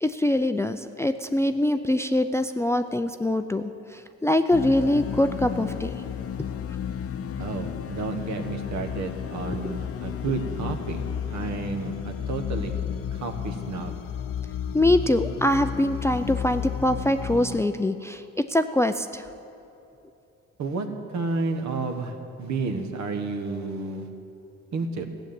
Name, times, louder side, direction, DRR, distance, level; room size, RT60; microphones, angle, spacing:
voice 1, 0.0-5.9 9.6-9.8 14.7-19.2, left 1 dB, 10° left, 9 dB, 0.4 m, -24 dB
sound 1, 4.5-17.7, left 8 dB, 50° left, 0.7 m, -33 dB
voice 2, 7.4-11.0 11.3-12.7 13.1-13.9 20.6-20.9 21.1-24.1 24.7-25.1, right 3 dB, 65° right, 5 dB, 1.4 m, -31 dB
15.0 x 7.2 x 9.5 m, 2.8 s
cardioid pair, 90°, 30 cm